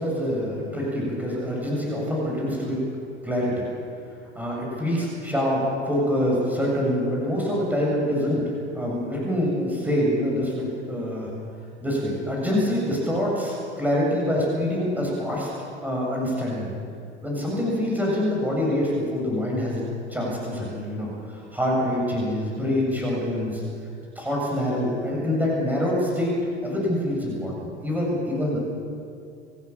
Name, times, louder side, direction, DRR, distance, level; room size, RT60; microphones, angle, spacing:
voice 1, 0.0-2.8 3.2-3.6 4.3-11.3 11.8-15.5 15.8-16.7 17.2-19.8 20.1-23.6 24.1-26.3 26.6-28.6, left 1 dB, 5° right, -3 dB, 7.9 m, -25 dB
29.0 x 15.5 x 7.3 m, 2.3 s
figure-of-eight pair, 75°, 34 cm